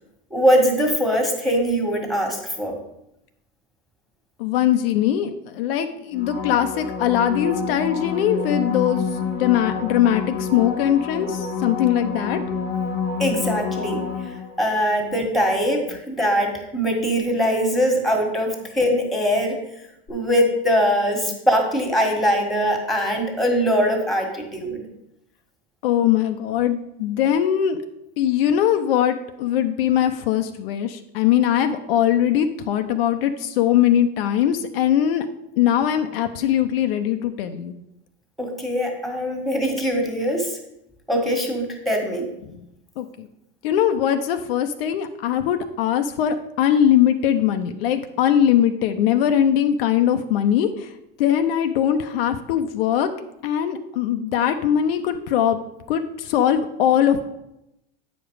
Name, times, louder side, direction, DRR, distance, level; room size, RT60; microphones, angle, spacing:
voice 1, 0.3-2.7 13.2-19.6 20.1-24.8 38.4-40.6 41.1-42.3, equal, ahead, 3 dB, 1.7 m, -22 dB
voice 2, 4.4-9.1 9.4-12.4 21.3-21.4 25.8-27.8 28.2-35.3 35.6-37.8 42.4-42.7 43.0-43.3 43.6-53.1 53.4-55.6 55.9-57.2, left 10 dB, 70° left, 7 dB, 0.7 m, -21 dB
sound 1, 6.1-14.7 20.1-20.2, left 5 dB, 30° left, 1.1 m, -28 dB
8.6 x 5.1 x 4.8 m, 0.86 s
supercardioid pair, 115°, 30 cm